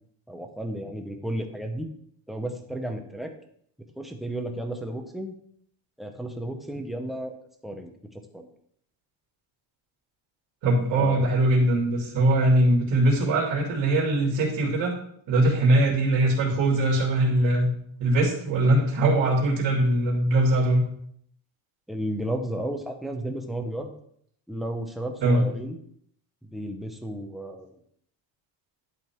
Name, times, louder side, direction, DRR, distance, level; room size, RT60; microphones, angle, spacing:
voice 1, 0.3-1.9 2.3-3.3 4.0-5.3 6.0-7.4 7.6-7.9 8.3-8.5 10.9-11.3 21.9-23.9 24.5-25.8 26.4-27.7, right 1 dB, ahead, 3 dB, 0.6 m, -33 dB
voice 2, 10.6-14.9 15.3-17.7 18.0-20.8 25.2-25.4, right 1 dB, 65° right, -3 dB, 2.6 m, -21 dB
11.0 x 3.7 x 4.4 m, 0.66 s
cardioid pair, 155°, 47 cm